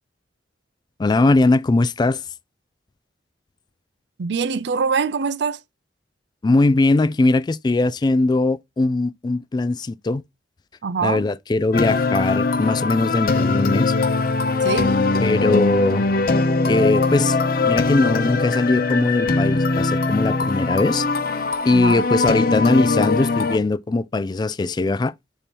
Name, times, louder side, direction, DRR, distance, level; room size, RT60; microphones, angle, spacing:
voice 1, 1.0-2.2 6.4-10.2 11.0-13.9 15.2-16.0 16.7-25.1, left 2 dB, 25° left, 0.3 m, -20 dB
voice 2, 4.2-5.6 10.8-11.3 14.6-14.9 21.7-22.0, right 5 dB, 65° right, 0.5 m, -23 dB
sound 1, 11.7-23.6, left 3 dB, 50° left, 0.7 m, -21 dB
6.9 x 2.9 x 5.3 m
head